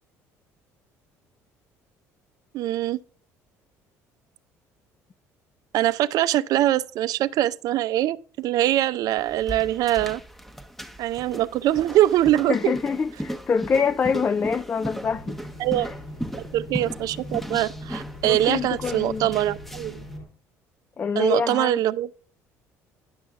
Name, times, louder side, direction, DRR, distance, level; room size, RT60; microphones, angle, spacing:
voice 1, 2.5-3.0 5.7-10.2 11.0-12.7 15.6-15.9 16.3-20.0 21.2-22.1, right 13 dB, 65° right, 0.4 m, -23 dB
sound 1, 9.2-20.1, equal, 5° left, 0.8 m, -37 dB
voice 2, 12.5-15.4 15.8-15.9 18.2-19.3 21.0-21.8, left 5 dB, 25° left, 0.3 m, -25 dB
sound 2, 15.0-20.2, left 1 dB, 85° left, 4.3 m, -40 dB
10.5 x 6.2 x 3.5 m
supercardioid pair, 95°, 7 cm